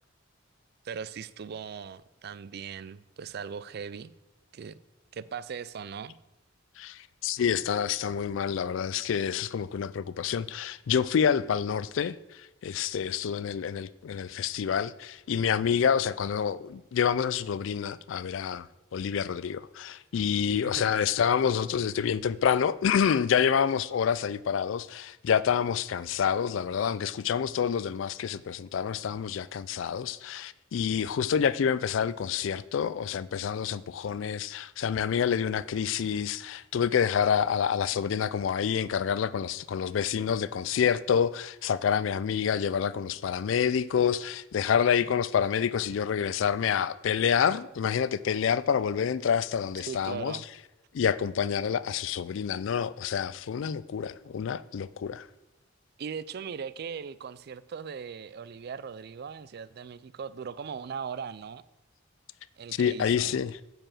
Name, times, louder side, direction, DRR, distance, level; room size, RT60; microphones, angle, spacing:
voice 1, 0.8-4.1 4.5-4.8 5.1-6.2 20.6-20.9 49.9-50.5 56.0-61.6 62.6-63.3, right 6 dB, 50° right, 0.3 m, -39 dB
voice 2, 6.8-18.7 18.9-50.5 50.9-55.3 62.7-63.6, left 7 dB, 70° left, 0.3 m, -28 dB
9.7 x 4.9 x 7.5 m
head